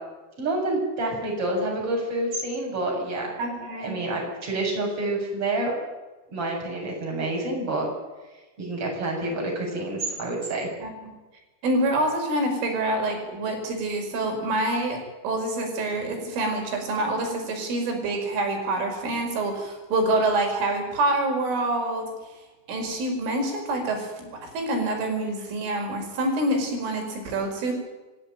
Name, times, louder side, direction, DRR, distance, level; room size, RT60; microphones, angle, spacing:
voice 1, 0.4-3.3 3.8-5.8 6.3-7.9 8.6-10.7, right 2 dB, 25° right, -1 dB, 8.0 m, -28 dB
voice 2, 3.4-4.0 10.8-11.1 11.6-22.1 22.7-24.3 24.5-27.7, right 2 dB, 75° right, 3 dB, 7.8 m, -26 dB
27.5 x 16.0 x 9.2 m, 1.2 s
omnidirectional pair, 5.8 m